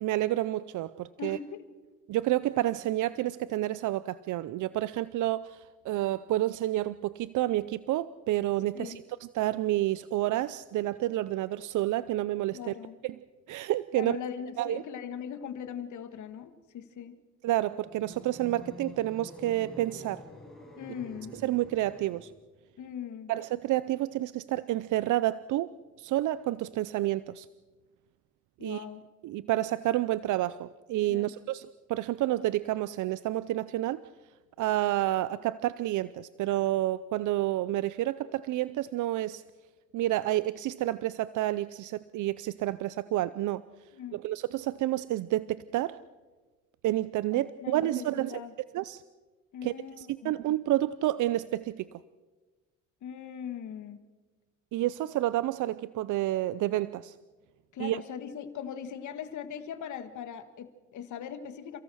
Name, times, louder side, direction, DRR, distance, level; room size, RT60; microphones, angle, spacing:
voice 1, 0.0-1.4 2.1-9.0 9.3-12.7 13.0-13.1 13.5-14.2 14.6-14.8 17.4-20.2 21.3-22.3 23.3-25.7 26.0-27.5 28.6-28.8 29.2-34.0 34.6-39.4 39.9-43.6 44.1-46.0 46.8-48.4 48.7-49.0 49.6-51.9 54.7-57.1 57.8-58.0, right 15 dB, 80° right, 17 dB, 0.6 m, -29 dB
voice 2, 1.2-1.6 8.7-9.0 12.5-13.0 13.9-17.2 20.8-21.3 22.8-23.3 28.6-29.0 31.1-31.3 44.0-44.2 47.3-48.5 49.5-50.4 53.0-54.0 57.7-61.8, left 8 dB, 75° left, 10 dB, 1.8 m, -40 dB
sound 1, 17.8-22.4, left 2 dB, ahead, 7.7 m, -48 dB
28.5 x 17.0 x 6.3 m, 1.3 s
cardioid pair, 90°, 30 cm